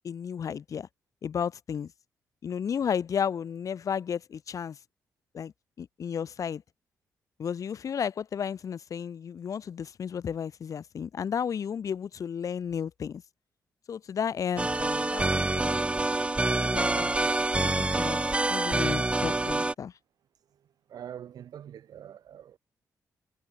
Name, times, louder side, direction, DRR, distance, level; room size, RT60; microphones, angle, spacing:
voice 1, 0.0-0.9 1.2-1.9 2.4-4.8 5.3-5.5 5.8-6.6 7.4-13.2 13.9-15.8 16.4-17.3 17.6-18.2 18.5-19.9, left 7 dB, 50° left, 0.5 m, -33 dB
sound 1, 14.6-19.7, right 2 dB, 15° right, 0.6 m, -26 dB
voice 2, 20.9-22.6, right 9 dB, 65° right, 0.6 m, -44 dB
supercardioid pair, 45°, 7 cm